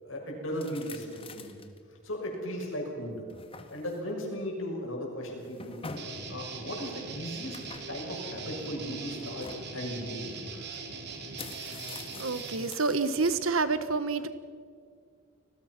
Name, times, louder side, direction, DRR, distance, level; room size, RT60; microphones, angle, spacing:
voice 1, 0.0-1.5 2.0-3.4 3.7-5.8 6.3-7.6 7.9-10.3, equal, 70° left, 0 dB, 6.8 m, -36 dB
sound 1, 0.5-1.8 2.3-2.4 3.0-4.1 5.3-6.2 7.5-8.1 9.2-9.7 10.7-10.8 11.2-13.4, left 4 dB, 30° left, 1.7 m, -46 dB
Guitar, 5.9-12.7, right 4 dB, 55° right, 3.0 m, -41 dB
voice 2, 12.2-14.3, right 4 dB, 90° right, 12 dB, 1.4 m, -28 dB
29.5 x 20.0 x 6.1 m, 2.1 s
head